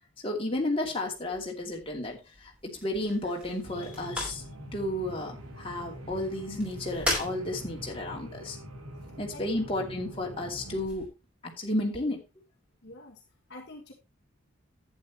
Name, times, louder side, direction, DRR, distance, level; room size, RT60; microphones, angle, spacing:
voice 1, 0.2-4.4 4.7-8.6 9.2-11.1 11.4-12.2, left 1 dB, 25° left, 0 dB, 2.6 m, -32 dB
sound 1, 1.1-11.1, left 1 dB, 5° right, 4.5 m, -40 dB
sound 2, 3.6-10.9, equal, 85° right, 2.6 m, -44 dB
voice 2, 9.0-9.4 12.8-13.2 13.5-13.9, left 2 dB, 50° left, 0 dB, 1.7 m, -47 dB
11.5 x 9.3 x 3.0 m, 0.25 s
head